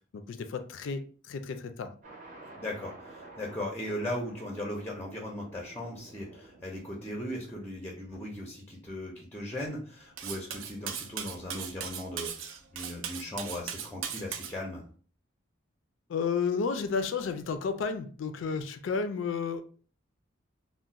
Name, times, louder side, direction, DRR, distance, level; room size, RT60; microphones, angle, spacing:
voice 1, 0.1-1.9 16.1-19.6, left 5 dB, 70° left, 0.3 m, -32 dB
sound 1, 2.0-9.6, right 2 dB, 45° right, 0.6 m, -52 dB
voice 2, 2.4-14.8, left 1 dB, 10° left, 0.5 m, -38 dB
Cutlery silverware, 10.2-14.5, right 8 dB, 90° right, 0.4 m, -38 dB
2.3 x 2.1 x 3.9 m
head